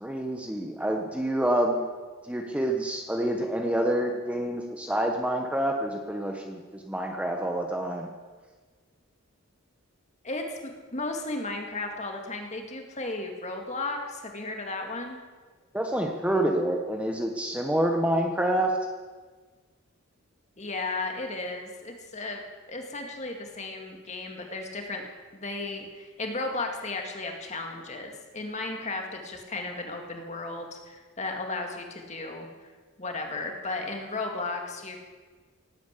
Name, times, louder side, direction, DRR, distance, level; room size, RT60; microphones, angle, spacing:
voice 1, 0.0-1.9 2.2-8.1 15.7-18.8, right 1 dB, 5° right, 2 dB, 1.1 m, -27 dB
voice 2, 10.2-15.2 20.6-22.4 22.7-25.0 25.3-32.5 33.0-35.0, left 2 dB, 30° left, 3 dB, 2.2 m, -34 dB
18.0 x 9.4 x 8.3 m, 1.4 s
head